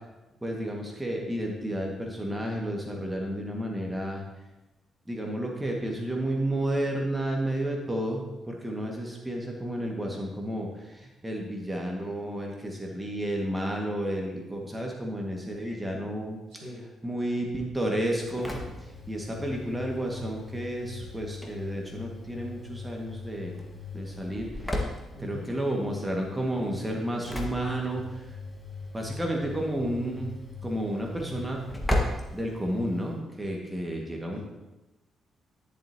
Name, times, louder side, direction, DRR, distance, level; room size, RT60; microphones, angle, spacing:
voice 1, 0.4-4.2 5.1-16.4 17.0-18.5 19.1-23.5 23.9-24.7 25.2-28.3 28.9-30.3 30.6-31.6 32.3-34.4, right 1 dB, 10° right, -1 dB, 1.8 m, -31 dB
voice 2, 16.5-16.8 25.1-25.5 34.3-34.4, equal, 80° right, -8 dB, 3.1 m, -42 dB
Engine / Slam, 18.0-33.2, left 1 dB, 5° left, 1.6 m, -37 dB
11.0 x 7.4 x 2.9 m, 1.0 s
figure-of-eight pair, 40°, 0 cm